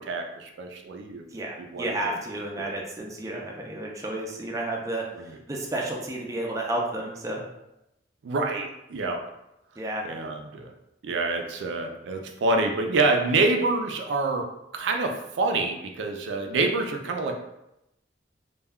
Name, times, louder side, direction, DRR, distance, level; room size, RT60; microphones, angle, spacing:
voice 1, 0.0-1.3 1.6-2.0 2.6-2.7 5.2-5.3 8.2-9.3 10.0-10.7 11.0-14.5 14.7-17.4, right 3 dB, 85° right, 4 dB, 0.4 m, -27 dB
voice 2, 1.3-5.1 5.5-7.4 9.8-10.1, right 1 dB, 20° right, -1 dB, 0.4 m, -31 dB
2.2 x 2.2 x 3.4 m, 0.87 s
head